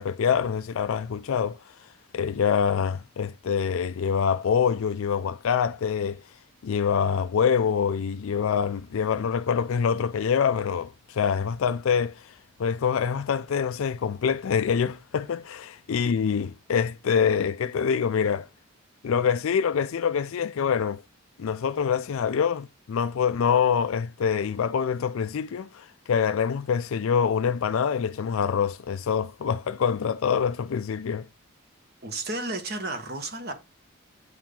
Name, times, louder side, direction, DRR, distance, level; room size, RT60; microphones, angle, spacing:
voice 1, 0.0-1.6 2.1-6.2 6.6-12.3 12.6-18.5 19.0-21.0 21.4-31.3, left 7 dB, 70° left, 0.4 m, -25 dB
voice 2, 32.0-33.5, right 2 dB, 45° right, 1.4 m, -32 dB
8.2 x 4.5 x 3.8 m
head